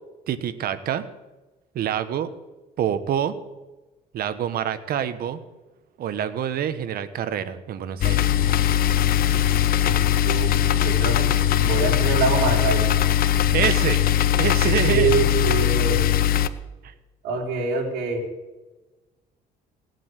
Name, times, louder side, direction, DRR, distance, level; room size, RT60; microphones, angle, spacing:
voice 1, 0.3-1.0 1.7-2.3 2.8-3.3 4.1-5.4 6.0-8.3 13.4-14.0 14.4-15.1 16.8-16.9, right 9 dB, 65° right, 12 dB, 1.4 m, -26 dB
sound 1, 8.0-16.5, left 11 dB, 60° left, 0.9 m, -20 dB
voice 2, 10.2-12.9 14.7-16.0 17.2-18.2, right 5 dB, 80° right, 0 dB, 4.9 m, -25 dB
19.0 x 8.3 x 8.4 m, 1.1 s
cardioid pair, 110°, 17 cm